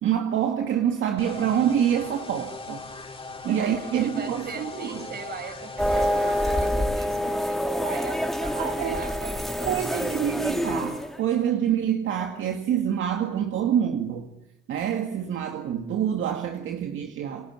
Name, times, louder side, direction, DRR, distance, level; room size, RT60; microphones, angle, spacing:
voice 1, 0.0-2.8 3.4-5.1 8.5-9.0 9.6-14.3 14.7-17.5, right 9 dB, 75° right, 2.2 m, -26 dB
sound 1, 1.2-6.7, left 3 dB, 30° left, 4.0 m, -39 dB
voice 2, 3.5-10.4, right 5 dB, 55° right, 5.7 m, -38 dB
sound 2, 5.8-11.2, left 1 dB, ahead, 3.3 m, -27 dB
30.0 x 20.5 x 8.9 m
cardioid pair, 90°, 20 cm